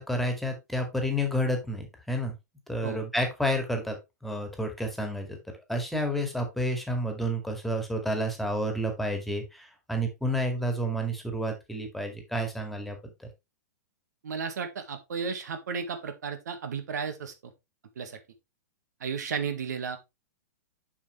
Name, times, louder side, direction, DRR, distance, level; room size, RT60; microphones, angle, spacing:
voice 1, 0.0-2.3 2.7-5.4 5.7-13.3, equal, ahead, 2.1 m, -30 dB
voice 2, 14.2-17.5 17.9-18.2 19.0-20.0, right 6 dB, 75° right, 1.7 m, -34 dB
7.3 x 6.4 x 3.2 m
hypercardioid pair, 125°, 9 cm